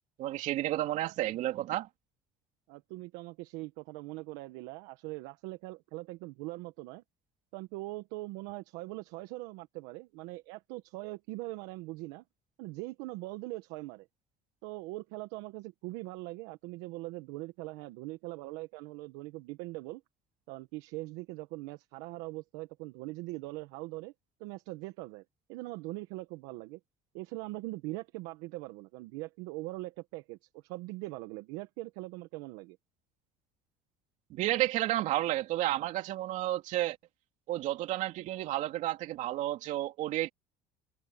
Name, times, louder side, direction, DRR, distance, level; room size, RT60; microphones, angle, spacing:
voice 1, 0.2-1.9 34.3-37.0 37.5-40.3, right 14 dB, 65° right, 3.0 m, -31 dB
voice 2, 2.7-7.0 7.5-12.2 12.6-14.1 14.6-20.0 20.5-24.1 24.4-25.2 25.5-26.8 27.1-32.8, right 21 dB, 80° right, 1.6 m, -41 dB
supercardioid pair, 90°, 14 cm